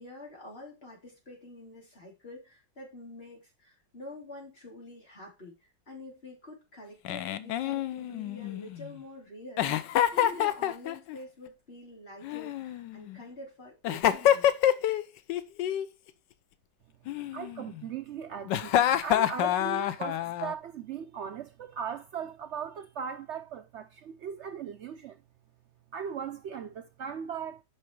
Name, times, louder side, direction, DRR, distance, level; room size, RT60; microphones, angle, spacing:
voice 1, 0.0-5.5 5.9-14.5, left 2 dB, 35° left, 3.4 m, -47 dB
Giggle, 7.0-8.9 9.6-11.2 12.2-13.2 13.8-15.0 15.3-15.8 17.1-17.8 18.5-20.5, left 11 dB, 90° left, 1.3 m, -27 dB
voice 2, 17.3-25.2 25.9-27.6, right 7 dB, 90° right, 0.6 m, -38 dB
6.1 x 5.8 x 4.5 m
omnidirectional pair, 1.9 m